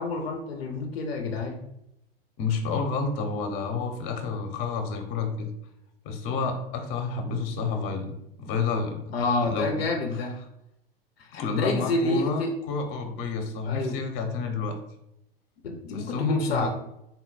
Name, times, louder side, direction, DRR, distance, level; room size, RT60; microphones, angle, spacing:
voice 1, 0.0-1.6 9.1-10.3 11.2-12.6 13.7-14.0 15.6-16.7, left 3 dB, 75° left, 3 dB, 0.6 m, -28 dB
voice 2, 2.4-5.5 6.0-8.1 8.4-9.2 9.4-9.9 11.3-14.8 15.9-16.7, left 4 dB, 45° left, 5 dB, 0.9 m, -29 dB
4.0 x 2.2 x 4.1 m, 0.83 s
hypercardioid pair, 95°, 30 cm